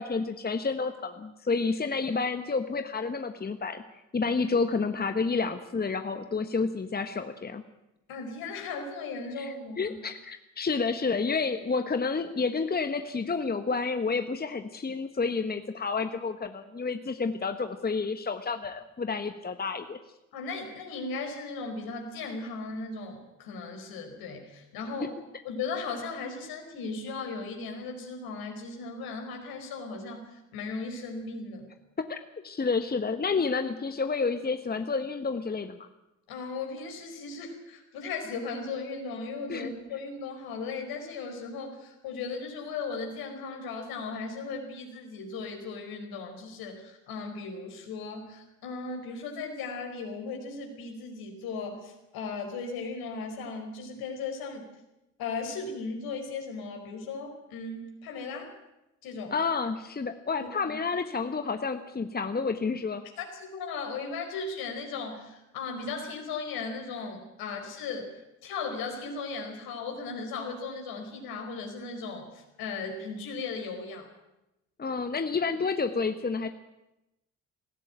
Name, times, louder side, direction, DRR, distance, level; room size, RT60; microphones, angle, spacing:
voice 1, 0.0-7.6 9.4-20.0 25.0-25.1 32.0-32.2 32.4-35.9 39.5-39.7 59.3-63.0 74.8-76.5, left 4 dB, 25° left, 9 dB, 1.4 m, -30 dB
voice 2, 8.1-10.0 20.3-25.1 25.4-31.7 36.3-54.7 55.2-58.5 59.0-59.3 60.4-60.7 63.2-74.1, left 4 dB, 70° left, 3 dB, 5.0 m, -37 dB
19.5 x 16.0 x 8.9 m, 0.93 s
hypercardioid pair, 50°, 37 cm